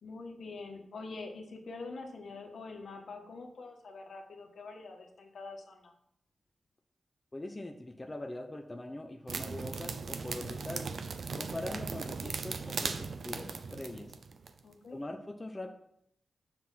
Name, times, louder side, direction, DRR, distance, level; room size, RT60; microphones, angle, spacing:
voice 1, 0.0-5.9 14.6-15.0, left 3 dB, 75° left, 2 dB, 1.5 m, -45 dB
voice 2, 7.3-11.0 11.3-14.2 14.9-15.7, left 1 dB, 20° left, 3 dB, 0.7 m, -42 dB
sound 1, 9.3-14.6, right 4 dB, 65° right, 0.7 m, -38 dB
7.3 x 6.0 x 5.6 m, 0.73 s
wide cardioid pair, 130°, 0 cm